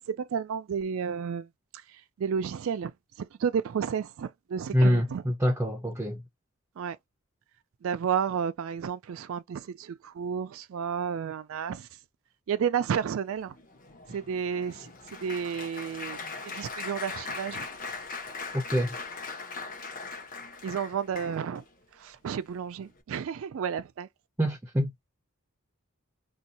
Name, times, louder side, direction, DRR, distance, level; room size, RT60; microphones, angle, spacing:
voice 1, 0.1-1.5 2.2-2.9 3.2-5.2 6.8-7.0 7.8-11.9 12.5-13.5 14.1-14.9 15.2-16.2 16.4-17.6 20.6-21.6 22.0-24.1, right 7 dB, 65° right, 0.3 m, -31 dB
voice 2, 4.7-6.2 18.5-18.9 24.4-24.9, equal, 10° right, 0.5 m, -25 dB
Applause, 13.3-21.7 22.3-22.5 22.8-23.0, left 4 dB, 40° left, 0.9 m, -40 dB
2.7 x 2.3 x 4.1 m
head